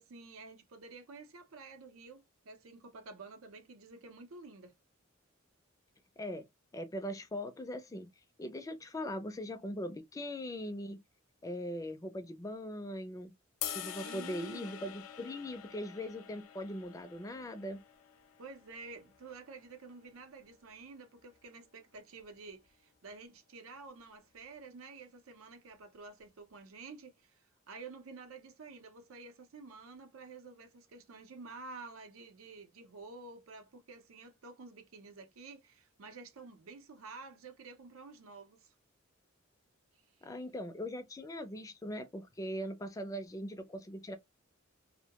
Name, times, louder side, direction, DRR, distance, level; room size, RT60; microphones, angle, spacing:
voice 1, 0.0-4.7 14.0-14.8 18.4-38.7, right 4 dB, 85° right, 0.6 m, -50 dB
voice 2, 6.7-8.1 8.4-11.0 11.4-13.3 13.7-17.8 40.2-44.2, equal, 15° left, 0.3 m, -40 dB
sound 1, 13.6-19.8, left 10 dB, 85° left, 0.4 m, -46 dB
2.2 x 2.1 x 2.8 m
head